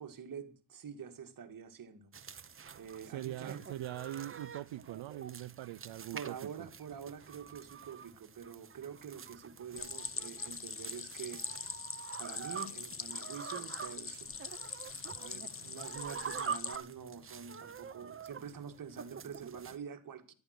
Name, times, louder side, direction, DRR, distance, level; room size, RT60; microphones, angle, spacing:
voice 1, 0.0-2.1 2.7-3.6 6.1-11.5 12.2-14.5 15.2-20.3, right 7 dB, 45° right, 2.0 m, -46 dB
sound 1, 2.1-19.8, right 7 dB, 25° right, 0.9 m, -46 dB
voice 2, 3.0-6.7 15.6-15.7, right 14 dB, 70° right, 0.7 m, -42 dB
Stream, 9.8-16.8, left 6 dB, 25° left, 0.9 m, -43 dB
14.0 x 12.0 x 6.6 m
cardioid pair, 150°, 48 cm